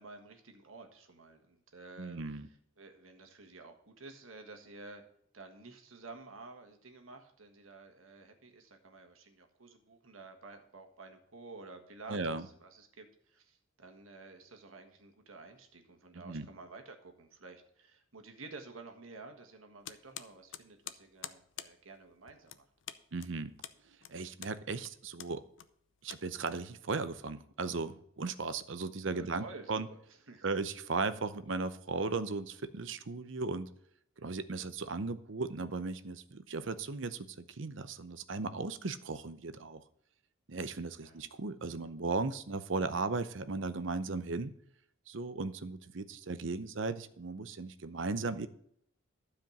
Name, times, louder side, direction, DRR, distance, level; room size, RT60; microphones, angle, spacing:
voice 1, 0.0-2.4 2.8-5.0 5.3-22.7 29.1-30.0 30.3-30.5 41.0-41.2, right 3 dB, 90° right, 5 dB, 1.7 m, -51 dB
voice 2, 2.0-2.5 12.1-12.5 16.2-16.5 23.1-23.5 24.1-25.4 26.0-29.9 30.4-33.7 34.2-39.8 40.5-44.5 45.1-48.5, right 3 dB, 65° right, 13 dB, 0.7 m, -36 dB
sound 1, 19.8-27.0, left 10 dB, 65° left, 0.7 m, -48 dB
12.0 x 5.1 x 7.2 m, 0.68 s
head